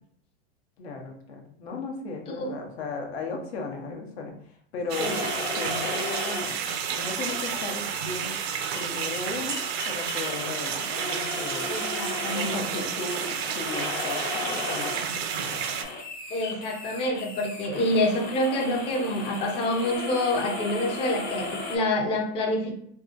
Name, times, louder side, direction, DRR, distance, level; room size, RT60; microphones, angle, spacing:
voice 1, 0.8-5.2 5.5-6.6 6.9-8.4 8.7-10.8 11.1-11.7 12.3-15.6, left 3 dB, 90° left, 2 dB, 0.9 m, -36 dB
sound 1, 4.9-21.8, left 2 dB, 45° left, 0.9 m, -36 dB
sound 2, 4.9-15.8, right 9 dB, 85° right, 0.5 m, -31 dB
voice 2, 11.7-12.9 16.3-22.7, left 1 dB, 20° left, 1 dB, 0.4 m, -27 dB
2.7 x 2.4 x 2.5 m, 0.65 s
supercardioid pair, 145°, 31 cm